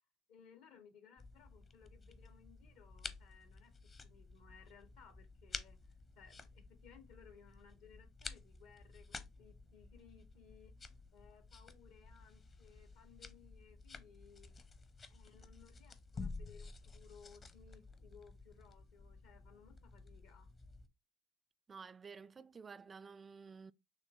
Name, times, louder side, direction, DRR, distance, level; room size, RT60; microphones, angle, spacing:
voice 1, 0.3-3.8 4.0-10.7 11.1-14.5 15.1-20.5, left 7 dB, 70° left, 1.1 m, -62 dB
sound 1, 1.2-20.9, left 4 dB, 35° left, 0.8 m, -52 dB
voice 2, 21.7-23.7, right 5 dB, 35° right, 0.3 m, -52 dB
6.3 x 2.2 x 3.8 m
hypercardioid pair, 60°, 0 cm